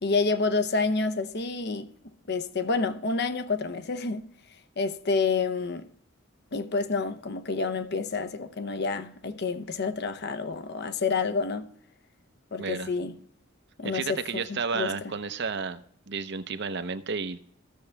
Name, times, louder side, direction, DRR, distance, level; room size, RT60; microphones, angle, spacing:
voice 1, 0.0-1.9 2.3-4.3 4.8-5.9 6.5-11.7 12.5-13.2 13.8-15.1, left 4 dB, 55° left, 0.8 m, -29 dB
voice 2, 12.6-12.9 13.8-15.8 16.1-17.4, right 5 dB, 60° right, 0.8 m, -32 dB
15.5 x 6.9 x 3.4 m
head